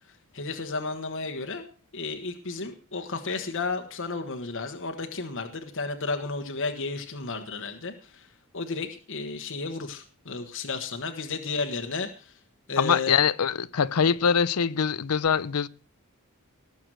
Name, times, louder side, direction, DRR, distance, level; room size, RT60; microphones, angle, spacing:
voice 1, 0.3-1.6 1.9-8.3 8.5-12.3 12.7-13.1, left 4 dB, 60° left, 1.4 m, -33 dB
voice 2, 12.8-15.7, left 6 dB, 85° left, 0.6 m, -23 dB
18.5 x 7.1 x 6.2 m
head